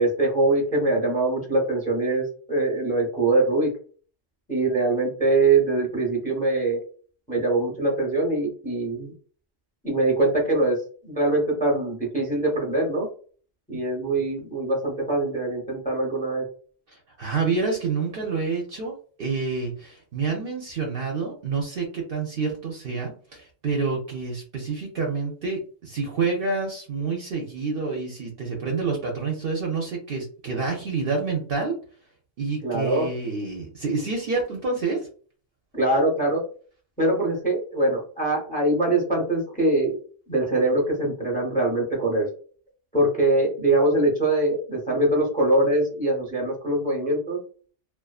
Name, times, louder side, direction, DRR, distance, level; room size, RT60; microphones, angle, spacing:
voice 1, 0.0-3.7 4.5-6.8 7.3-9.1 9.8-13.1 13.7-16.4 32.6-33.1 35.7-36.4 37.0-40.0 40.3-42.3 42.9-47.4, right 2 dB, 5° left, -2 dB, 0.8 m, -23 dB
voice 2, 16.9-18.9 19.2-31.7 32.4-35.1, right 4 dB, 55° right, 0 dB, 0.7 m, -28 dB
2.5 x 2.4 x 2.3 m, 0.42 s
omnidirectional pair, 1.3 m